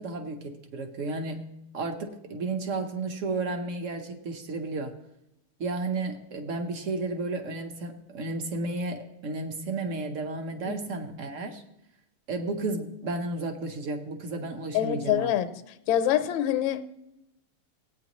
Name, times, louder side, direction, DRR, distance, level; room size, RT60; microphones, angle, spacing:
voice 1, 0.0-1.5 1.7-4.9 5.6-11.6 12.3-15.3, right 3 dB, 50° right, 0.9 m, -33 dB
voice 2, 14.7-15.6 15.9-16.8, left 11 dB, 70° left, 1.4 m, -25 dB
17.5 x 8.9 x 3.0 m
omnidirectional pair, 2.4 m